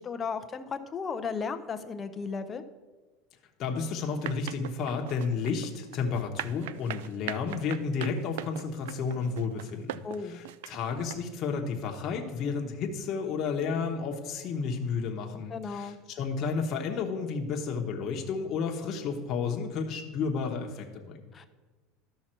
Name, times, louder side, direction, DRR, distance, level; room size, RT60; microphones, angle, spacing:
voice 1, 0.0-2.6 10.0-10.4 15.5-16.0 21.3-21.5, left 5 dB, 20° left, 9 dB, 0.5 m, -35 dB
voice 2, 3.6-21.2, left 5 dB, 35° left, 1 dB, 1.0 m, -32 dB
sound 1, 4.2-11.1, right 13 dB, 90° right, 0.3 m, -40 dB
12.5 x 5.6 x 4.4 m, 1.3 s
supercardioid pair, 155°, 0 cm